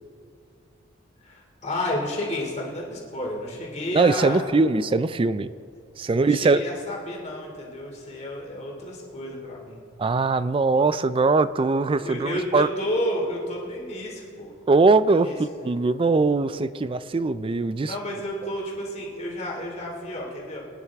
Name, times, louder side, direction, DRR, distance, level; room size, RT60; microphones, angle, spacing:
voice 1, 1.2-4.4 6.1-9.8 12.0-14.5 15.1-15.4 17.8-20.6, left 1 dB, 35° left, -2 dB, 2.7 m, -31 dB
voice 2, 3.9-5.5 6.0-6.6 10.0-12.7 14.7-15.3 15.6-18.0, right 3 dB, 25° right, 14 dB, 0.3 m, -21 dB
24.0 x 10.0 x 3.6 m, 2.3 s
head